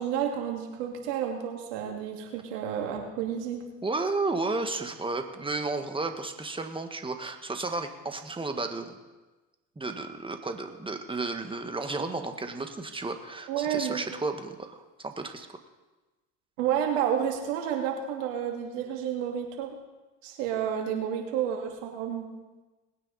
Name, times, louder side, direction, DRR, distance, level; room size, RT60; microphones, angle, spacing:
voice 1, 0.0-3.6 13.5-14.0 16.6-19.7 20.2-22.3, right 9 dB, 80° right, 2 dB, 2.5 m, -30 dB
voice 2, 3.8-9.0 9.7-15.6, right 3 dB, 15° right, 6 dB, 1.6 m, -33 dB
20.0 x 9.1 x 4.2 m, 1.2 s
hypercardioid pair, 75°, 37 cm